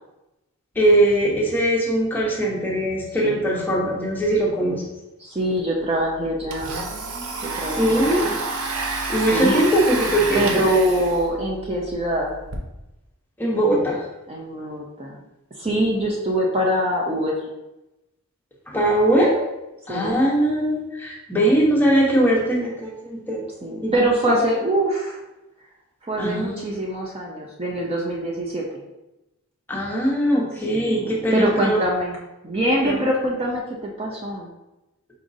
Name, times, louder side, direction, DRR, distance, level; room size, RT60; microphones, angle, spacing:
voice 1, 0.8-4.8 7.8-8.3 9.1-10.7 13.4-14.0 18.7-19.3 19.9-23.4 23.8-23.9 24.2-24.3 26.2-26.6 29.7-31.8 32.8-33.0, right 1 dB, 10° left, -3 dB, 0.8 m, -20 dB
voice 2, 5.2-6.8 7.4-8.4 8.7-8.9 9.3-9.6 10.3-12.4 14.3-15.2 15.5-17.5 19.9-20.2 23.6-25.2 26.0-28.6 30.7-32.2 32.4-34.5, right 1 dB, 25° right, -2 dB, 0.5 m, -24 dB
Domestic sounds home sounds, 5.6-5.7 6.0-12.6, right 3 dB, 90° right, 0.7 m, -29 dB
5.0 x 4.0 x 2.6 m, 0.97 s
head